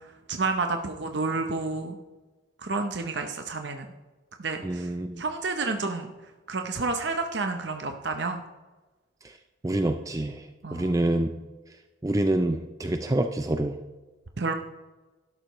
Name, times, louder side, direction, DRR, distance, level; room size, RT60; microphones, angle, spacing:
voice 1, 0.3-2.0 2.6-3.9 4.4-4.9 5.2-6.1 6.5-8.4 10.6-11.3 14.4-14.5, right 3 dB, 60° right, 5 dB, 0.7 m, -30 dB
voice 2, 4.6-5.2 9.6-10.5 10.7-11.3 12.0-13.8, right 1 dB, 15° right, 6 dB, 0.4 m, -26 dB
12.5 x 11.5 x 3.1 m, 1.2 s
head